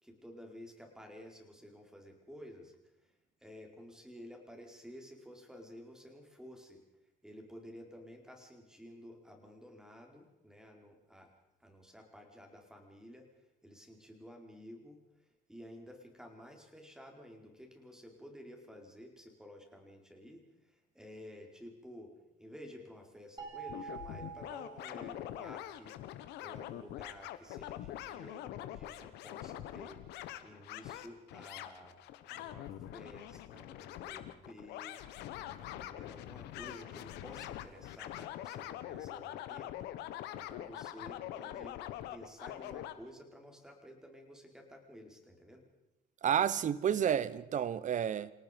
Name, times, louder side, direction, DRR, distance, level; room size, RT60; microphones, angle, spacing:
voice 1, 0.0-2.8 3.0-3.1 3.4-6.8 7.2-11.3 11.6-13.3 13.6-15.0 15.5-22.1 22.4-26.0 26.4-30.0 30.4-32.0 32.3-32.7 32.9-35.0 35.6-39.7 40.3-41.7 42.1-45.6, equal, 5° right, 4.9 m, -52 dB
sound 1, 23.4-25.6, right 6 dB, 25° right, 7.2 m, -47 dB
sound 2, 23.7-42.9, left 13 dB, 90° left, 1.5 m, -44 dB
voice 2, 46.2-48.3, right 9 dB, 50° right, 1.1 m, -30 dB
28.0 x 18.5 x 5.4 m
cardioid pair, 110°, 17 cm